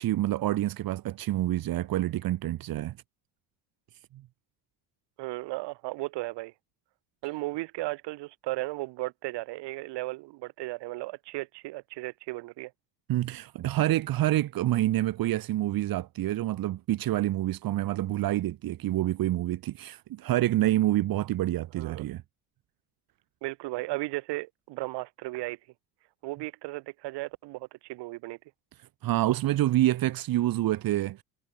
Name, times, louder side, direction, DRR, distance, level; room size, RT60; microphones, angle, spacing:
voice 1, 0.0-3.0 13.1-22.2 29.0-31.2, right 14 dB, 55° right, 2.5 m, -27 dB
voice 2, 5.2-6.5 7.2-12.7 21.8-22.0 23.4-25.6 26.2-28.4, right 21 dB, 80° right, 3.0 m, -35 dB
cardioid pair, 140°, 41 cm